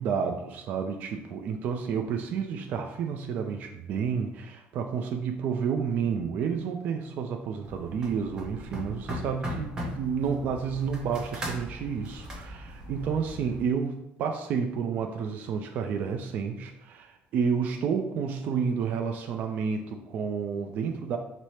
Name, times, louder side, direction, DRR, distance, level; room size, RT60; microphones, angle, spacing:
voice 1, 0.0-13.9 14.2-21.2, right 6 dB, 40° right, 4 dB, 0.3 m, -30 dB
sound 1, 7.6-13.6, equal, 15° right, 0.7 m, -38 dB
4.7 x 2.0 x 4.2 m, 0.82 s
cardioid pair, 175°, 4 cm